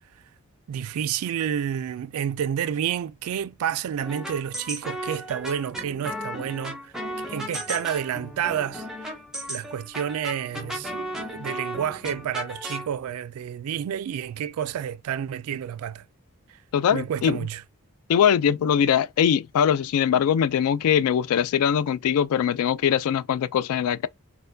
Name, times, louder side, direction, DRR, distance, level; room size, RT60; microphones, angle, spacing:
voice 1, 0.7-6.9 7.3-9.1 9.5-16.0 16.5-16.6 16.9-17.6, right 9 dB, 80° right, 0.3 m, -30 dB
sound 1, 4.0-12.9, equal, ahead, 0.8 m, -35 dB
voice 2, 16.7-17.4 18.1-24.1, left 8 dB, 80° left, 0.3 m, -22 dB
4.2 x 2.2 x 2.6 m
head